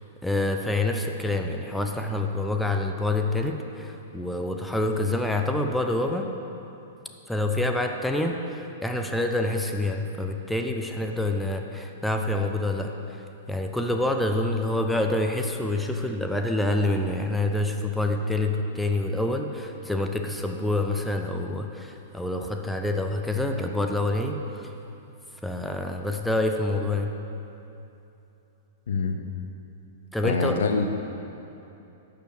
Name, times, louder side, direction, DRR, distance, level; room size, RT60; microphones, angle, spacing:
voice 1, 0.2-6.3 7.3-24.7 25.4-27.1 30.1-30.6, left 2 dB, 5° left, 3 dB, 0.6 m, -27 dB
voice 2, 28.9-29.2 30.2-30.9, left 4 dB, 60° left, 6 dB, 0.9 m, -25 dB
11.5 x 6.9 x 6.3 m, 2.9 s
figure-of-eight pair, 105°, 0 cm